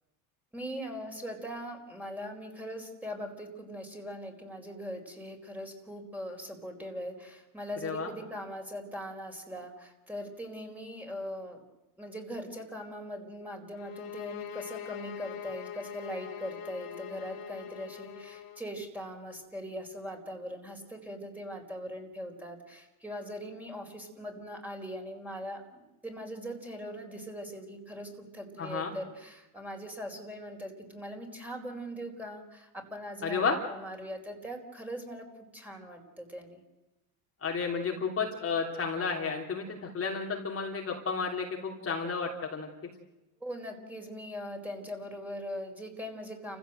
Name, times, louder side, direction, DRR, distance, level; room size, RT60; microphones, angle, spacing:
voice 1, 0.5-11.6 12.0-35.3 35.5-36.6 43.4-46.6, equal, 5° right, 2 dB, 4.5 m, -41 dB
sound 1, 13.7-18.6, left 10 dB, 50° left, 2.3 m, -43 dB
voice 2, 28.6-28.9 33.2-33.6 37.4-42.7, left 5 dB, 30° left, 0 dB, 3.0 m, -32 dB
29.5 x 15.5 x 7.9 m, 1.0 s
supercardioid pair, 100°, 45 cm